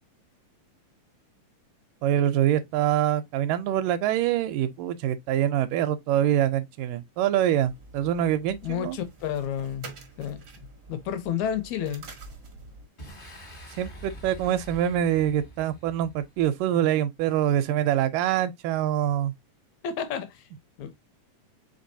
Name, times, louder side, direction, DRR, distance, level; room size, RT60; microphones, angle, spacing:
voice 1, 2.0-9.0 13.8-19.3, right 11 dB, 80° right, 2.1 m, -25 dB
sound 1, 7.6-12.9, right 3 dB, 65° right, 1.0 m, -47 dB
voice 2, 8.6-9.9 10.2-10.4 10.9-12.1 19.8-20.4 20.8-20.9, left 9 dB, 75° left, 1.8 m, -30 dB
Boom, 13.0-16.6, right 1 dB, 45° left, 0.6 m, -45 dB
5.2 x 3.8 x 2.6 m
omnidirectional pair, 3.8 m